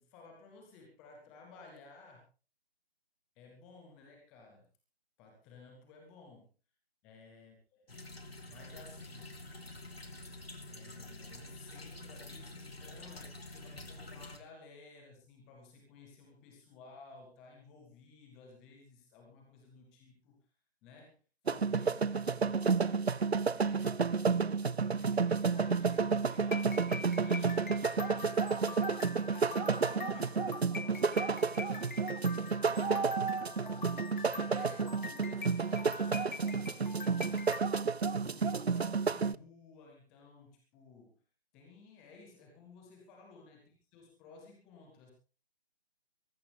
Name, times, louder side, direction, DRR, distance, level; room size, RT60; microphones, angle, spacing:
voice 1, 0.0-2.2 3.4-4.7 5.2-6.5 7.0-8.0 8.4-9.4 10.7-20.4 20.8-21.2 21.5-22.7 23.5-24.5 24.8-29.0 29.3-32.0 32.7-33.6 34.2-37.5 38.1-41.2 41.5-45.1, left 4 dB, ahead, 2 dB, 0.6 m, -56 dB
sound 1, 7.9-14.4, left 2 dB, 75° left, 3.5 m, -48 dB
sound 2, 21.5-39.4, right 5 dB, 85° right, 0.7 m, -31 dB
sound 3, 25.6-37.6, left 5 dB, 50° left, 1.1 m, -45 dB
22.5 x 12.5 x 3.4 m, 0.34 s
figure-of-eight pair, 150°, 31 cm